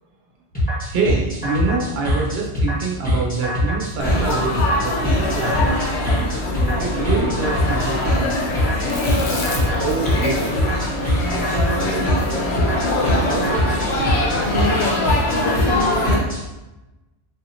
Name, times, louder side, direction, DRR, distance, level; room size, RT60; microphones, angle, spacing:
sound 1, 0.5-16.4, equal, 5° left, 1.4 m, -22 dB
voice 1, 0.9-4.5 4.8-5.8 6.8-8.0, right 4 dB, 60° right, 0 dB, 0.9 m, -25 dB
Laughter / Chatter / Crowd, 4.0-16.1, left 2 dB, 65° left, 0.9 m, -23 dB
Chewing mastication, 8.9-13.3, left 2 dB, 45° left, 0.6 m, -34 dB
voice 2, 9.8-10.6 11.4-12.6 13.0-15.3, right 4 dB, 90° right, 1 dB, 0.9 m, -30 dB
4.0 x 2.8 x 2.7 m, 1.0 s
omnidirectional pair, 1.2 m